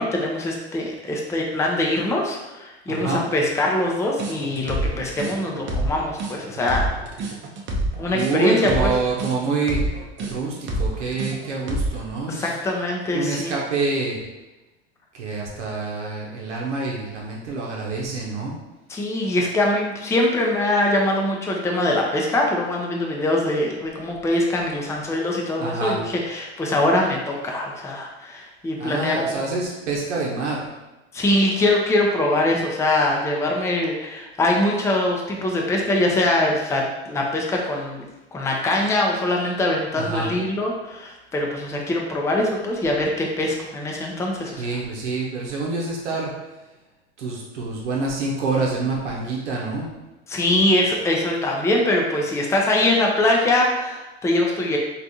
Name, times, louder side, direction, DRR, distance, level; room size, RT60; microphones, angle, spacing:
voice 1, 0.0-6.9 8.0-8.9 12.3-13.5 18.9-29.3 31.1-36.8 37.1-38.1 38.3-44.6 50.3-54.8, left 1 dB, 10° left, -1 dB, 0.5 m, -23 dB
voice 2, 2.9-3.2 8.1-9.8 10.2-12.6 13.1-14.2 15.1-18.6 25.6-26.0 28.8-30.7 40.0-40.3 44.6-46.3 47.2-49.9, right 3 dB, 85° right, -3 dB, 0.7 m, -26 dB
sound 1, 4.2-12.1, right 1 dB, 35° right, 0.6 m, -27 dB
3.3 x 2.4 x 2.7 m, 1.0 s
hypercardioid pair, 95°, 34 cm